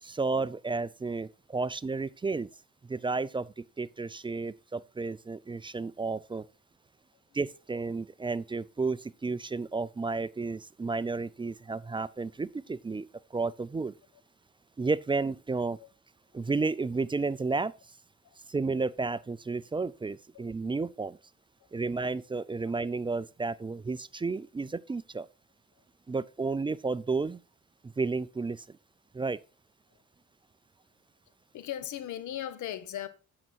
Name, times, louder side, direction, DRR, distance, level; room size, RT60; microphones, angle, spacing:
voice 1, 0.0-2.5 2.9-6.4 7.3-13.1 13.3-13.9 14.8-15.8 16.3-17.7 18.5-21.2 21.7-25.3 26.1-27.4 27.8-28.8 29.1-29.4, right 3 dB, 15° right, 0.4 m, -32 dB
voice 2, 31.5-33.1, left 11 dB, 75° left, 1.2 m, -38 dB
8.6 x 6.7 x 4.5 m
cardioid pair, 90°, 30 cm